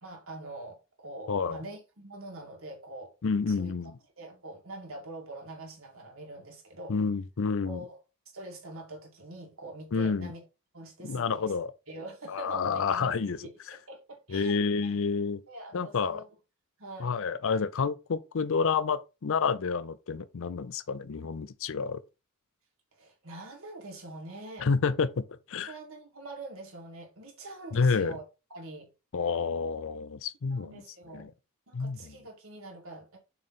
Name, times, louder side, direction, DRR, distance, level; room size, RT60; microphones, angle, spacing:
voice 1, 0.0-3.2 3.5-3.7 4.2-7.0 7.6-8.0 8.3-10.4 10.7-11.5 11.9-14.9 15.5-16.3 16.8-17.2 22.9-24.7 25.7-28.2 28.5-28.9 30.5-31.3 31.7-33.2, right 2 dB, 65° right, 2.1 m, -44 dB
voice 2, 1.3-1.6 3.2-3.9 6.9-7.8 9.9-10.3 11.0-11.7 12.3-13.4 14.3-15.4 15.7-16.2 17.0-22.0 24.6-25.7 27.7-28.2 29.1-30.7 31.1-31.3 31.7-32.2, left 5 dB, 65° left, 0.5 m, -29 dB
7.1 x 3.2 x 4.2 m
head